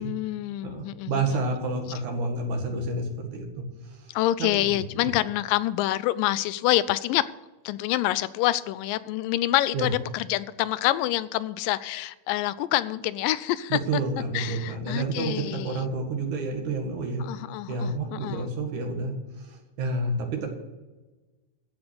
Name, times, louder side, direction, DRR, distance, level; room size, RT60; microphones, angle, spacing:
voice 1, 0.0-1.2 4.1-7.2 7.7-14.0 14.3-15.9 17.2-18.5, left 15 dB, 85° left, 2.3 m, -27 dB
voice 2, 0.6-4.0 4.4-4.7 5.0-5.1 9.7-9.9 13.7-17.3 17.7-20.5, right 3 dB, 65° right, 3.3 m, -30 dB
15.0 x 6.1 x 7.9 m
omnidirectional pair, 3.8 m